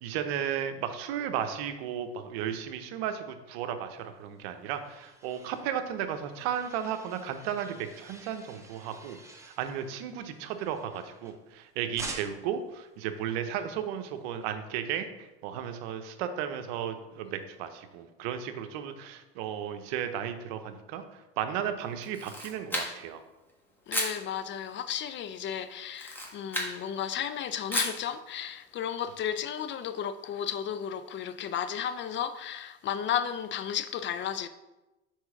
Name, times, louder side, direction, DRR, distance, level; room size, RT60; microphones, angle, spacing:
voice 1, 0.0-21.0 21.4-23.2, right 9 dB, 75° right, 0.8 m, -34 dB
sound 1, 4.2-11.5 12.0-12.6, right 2 dB, 10° right, 0.9 m, -48 dB
Camera, 22.0-23.2 23.9-24.2 25.9-26.8 27.7-28.0, equal, 5° left, 1.5 m, -32 dB
voice 2, 23.9-34.5, left 9 dB, 40° left, 0.5 m, -33 dB
5.0 x 4.6 x 5.7 m
supercardioid pair, 100°, 31 cm